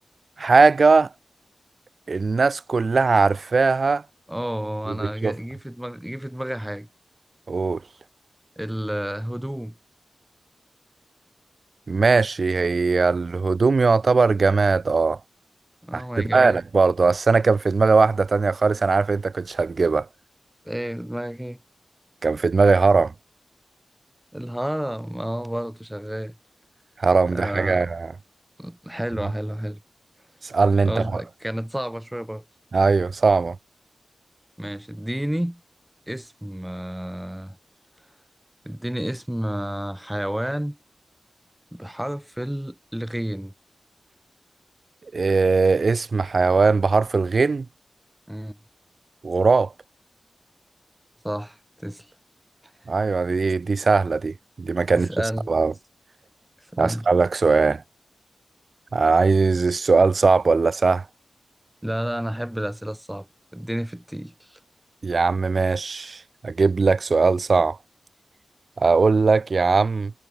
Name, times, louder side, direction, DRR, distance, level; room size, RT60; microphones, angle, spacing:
voice 1, 0.4-1.1 2.1-4.0 4.9-5.3 7.5-7.8 11.9-15.2 15.9-16.0 16.3-20.1 22.2-23.1 27.0-28.1 30.4-31.2 32.7-33.6 45.1-47.7 49.2-49.7 52.9-55.1 55.5-55.7 56.8-57.8 58.9-61.0 65.0-67.8 68.8-70.1, right 4 dB, 60° right, 0.8 m, -20 dB
voice 2, 4.3-6.9 8.6-9.7 15.8-16.6 20.7-21.6 24.3-26.4 27.3-27.9 28.6-29.8 30.9-32.4 34.6-35.6 36.1-37.6 38.7-40.8 41.7-43.5 48.3-48.6 51.2-52.1 54.9-55.5 56.7-57.0 61.8-63.3 63.5-64.6, equal, 10° right, 3.4 m, -30 dB
cardioid pair, 40°, 0 cm